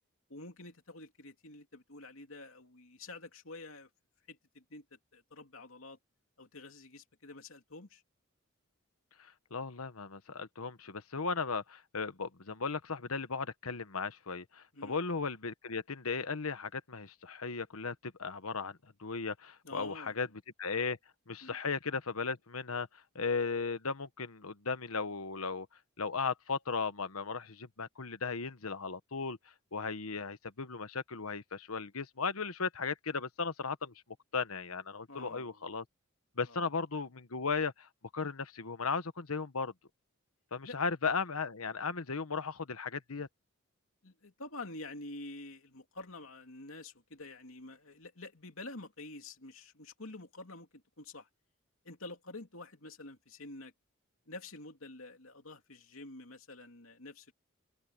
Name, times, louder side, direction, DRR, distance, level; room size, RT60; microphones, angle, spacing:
voice 1, 0.3-3.9 4.3-6.0 6.4-8.0 14.7-15.0 19.6-20.3 21.4-21.6 35.1-35.7 36.4-36.6 40.6-40.8 44.0-51.3 51.8-53.7 54.3-57.3, left 2 dB, 70° left, 3.0 m, -48 dB
voice 2, 9.2-20.3 20.6-21.0 21.3-22.9 23.1-25.7 26.0-29.4 29.7-33.9 34.3-35.8 36.4-39.7 40.5-43.3, left 4 dB, 90° left, 1.2 m, -36 dB
open air
head